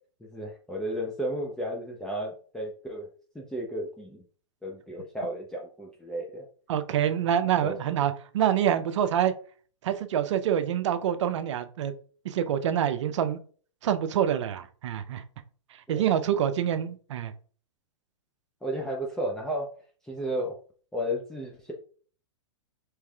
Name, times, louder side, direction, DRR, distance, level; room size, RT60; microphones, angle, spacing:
voice 1, 0.3-3.1 3.3-4.2 4.6-6.5 7.4-7.8 15.9-16.0 18.6-19.7 20.1-20.5 20.9-21.7, equal, 5° left, -2 dB, 0.6 m, -33 dB
voice 2, 6.7-9.3 9.8-11.9 12.2-13.4 13.8-15.2 15.9-17.3, right 9 dB, 65° right, 10 dB, 0.5 m, -26 dB
4.6 x 3.2 x 2.3 m, 0.43 s
hypercardioid pair, 120°, 16 cm